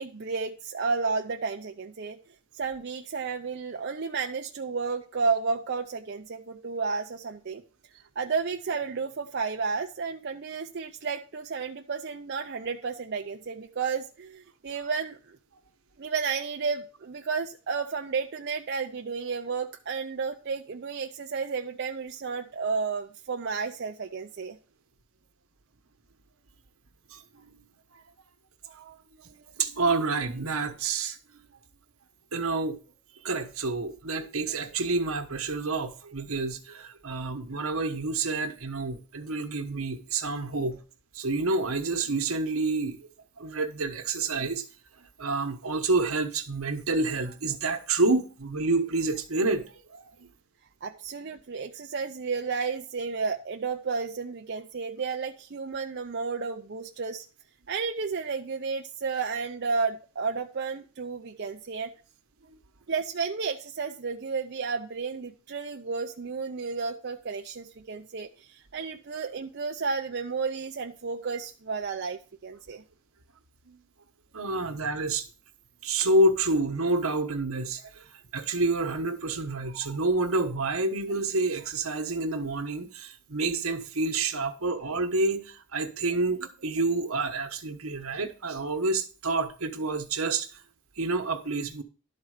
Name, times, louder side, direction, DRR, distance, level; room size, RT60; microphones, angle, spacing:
voice 1, 0.0-2.2 2.5-7.6 8.2-15.4 16.0-24.6 50.8-57.2 57.7-61.9 62.9-72.8, right 5 dB, 50° right, 0.5 m, -32 dB
voice 2, 29.6-31.2 32.3-32.8 33.2-40.8 41.1-43.0 43.4-44.6 45.2-49.6 49.9-50.3 73.7-73.8 74.3-75.3 75.8-78.0 78.3-90.5 91.0-91.8, right 3 dB, 80° right, 1.2 m, -28 dB
12.0 x 4.4 x 6.5 m
head